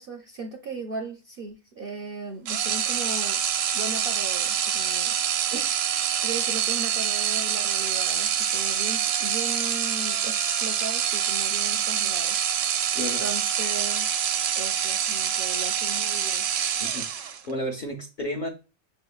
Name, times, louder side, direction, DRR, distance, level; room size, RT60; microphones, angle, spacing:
voice 1, 0.0-3.4 3.7-5.2 5.5-12.4 13.2-14.1 14.5-16.4, right 3 dB, 60° right, 3 dB, 0.6 m, -37 dB
sound 1, 2.5-17.5, right 9 dB, 80° right, 1.0 m, -26 dB
voice 2, 12.9-13.3 16.8-18.5, equal, 45° left, 1 dB, 0.7 m, -32 dB
6.7 x 2.9 x 2.3 m, 0.31 s
omnidirectional pair, 1.5 m